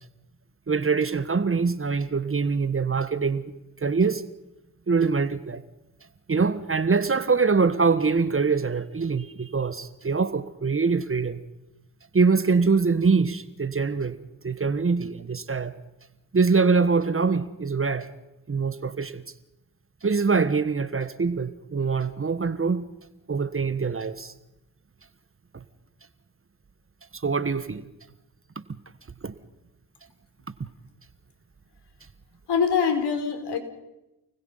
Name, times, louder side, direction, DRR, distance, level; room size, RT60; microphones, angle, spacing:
voice 1, 0.7-3.4 3.8-4.2 4.9-5.6 6.3-11.4 12.1-14.2 14.4-15.7 16.3-18.1 18.5-19.2 20.0-22.9 23.3-24.3 25.5-25.6 27.1-27.8 28.5-28.6 29.2-29.3, right 4 dB, 30° right, 1.5 m, -24 dB
voice 2, 32.5-33.6, left 6 dB, 60° left, 4.7 m, -23 dB
30.0 x 20.5 x 5.7 m
supercardioid pair, 60°, 45 cm